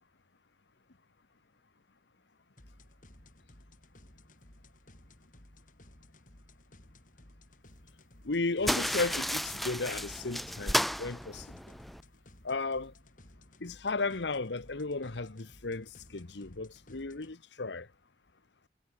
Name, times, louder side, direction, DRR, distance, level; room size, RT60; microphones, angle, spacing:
sound 1, 2.6-17.3, left 1 dB, 45° left, 4.1 m, -57 dB
voice 1, 8.2-11.6 12.4-12.9 13.6-17.9, left 3 dB, 85° left, 1.2 m, -35 dB
sound 2, 8.6-12.0, equal, ahead, 0.3 m, -33 dB
head